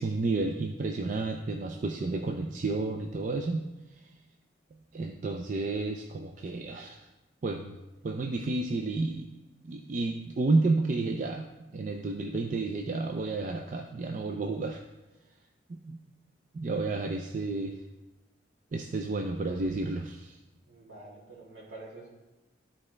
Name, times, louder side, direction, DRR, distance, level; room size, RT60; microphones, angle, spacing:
voice 1, 0.0-3.6 3.9-4.1 4.9-7.1 7.4-7.8 8.0-9.3 9.6-11.4 11.7-14.8 15.7-16.0 16.5-17.8 18.7-20.4, right 3 dB, 45° right, 4 dB, 0.4 m, -31 dB
voice 2, 20.7-22.1, right 2 dB, 75° right, -6 dB, 2.5 m, -47 dB
12.5 x 4.3 x 3.2 m, 1.1 s
head